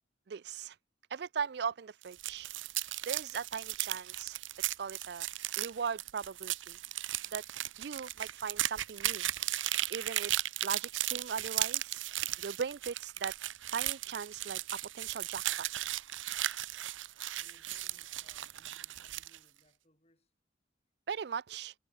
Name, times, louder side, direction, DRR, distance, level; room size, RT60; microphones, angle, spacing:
voice 1, 0.3-0.8 1.1-2.5 3.1-4.4 4.7-5.3 5.6-7.4 7.8-9.2 9.9-10.3 10.6-12.1 12.4-13.3 13.7-14.6 14.9-15.7 21.1-21.7, right 6 dB, 55° right, 0.4 m, -39 dB
sound 1, 2.0-19.4, right 14 dB, 85° right, 0.9 m, -36 dB
voice 2, 17.3-20.3, left 2 dB, 35° left, 7.6 m, -68 dB
head